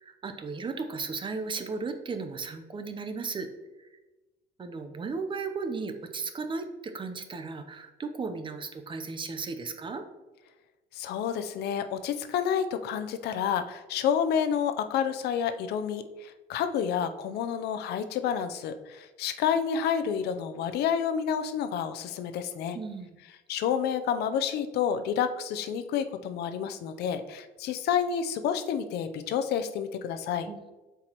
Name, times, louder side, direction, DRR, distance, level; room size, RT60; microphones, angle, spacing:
voice 1, 0.0-3.5 3.8-3.9 4.6-10.0 22.7-23.2 30.5-30.7, right 4 dB, 30° right, 7 dB, 0.7 m, -35 dB
voice 2, 10.9-22.8 23.5-30.5, left 8 dB, 75° left, 10 dB, 0.6 m, -29 dB
7.6 x 4.6 x 3.0 m, 1.1 s
cardioid pair, 110°, 17 cm